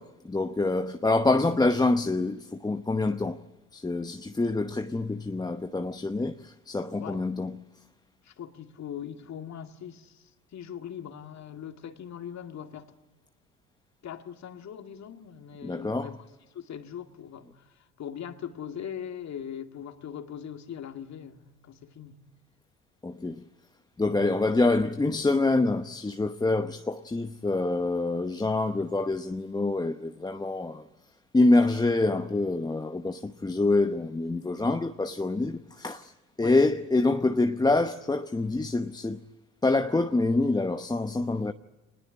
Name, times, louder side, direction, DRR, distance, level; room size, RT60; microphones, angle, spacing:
voice 1, 0.0-3.4 3.7-7.6 15.6-16.1 23.0-23.4 24.0-30.8 31.3-36.1 36.4-39.2 39.6-41.5, left 2 dB, 10° left, 0.9 m, -26 dB
voice 2, 8.2-12.9 14.0-16.2 16.5-22.2 36.4-36.6, left 9 dB, 45° left, 2.2 m, -41 dB
24.0 x 20.0 x 10.0 m
hypercardioid pair, 60°, 37 cm